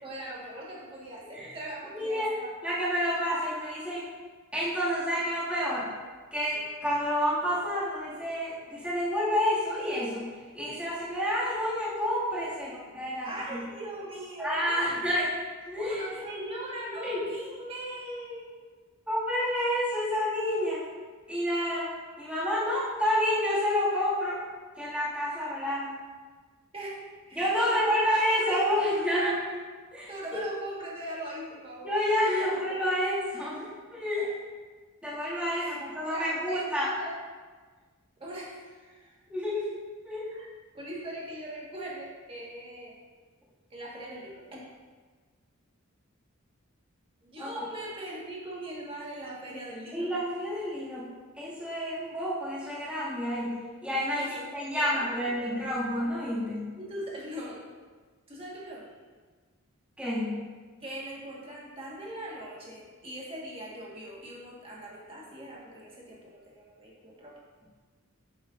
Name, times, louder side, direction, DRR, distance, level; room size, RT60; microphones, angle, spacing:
voice 1, 0.0-2.7 13.2-15.2 15.8-18.6 26.7-29.5 30.1-31.9 32.4-32.9 34.2-34.3 35.5-37.2 38.2-39.2 40.3-40.5 40.7-43.0 43.7-44.6 47.2-50.1 54.2-54.5 54.8-55.5 56.7-57.6 58.3-58.9 60.8-67.4, right 1 dB, 25° right, -4 dB, 1.5 m, -40 dB
voice 2, 1.9-2.3 2.6-4.1 4.5-5.9 6.3-10.3 10.5-13.6 14.4-15.3 15.7-16.3 17.0-17.2 19.1-20.8 21.3-21.9 22.2-24.4 24.8-25.9 27.3-29.3 29.9-30.1 31.8-34.3 35.0-36.9 39.3-39.7 40.0-40.2 47.4-47.6 49.9-51.1 51.4-53.5 53.8-54.2 54.5-56.7 60.0-60.4, equal, 5° right, -10 dB, 2.1 m, -29 dB
8.1 x 7.6 x 2.5 m, 1.4 s
head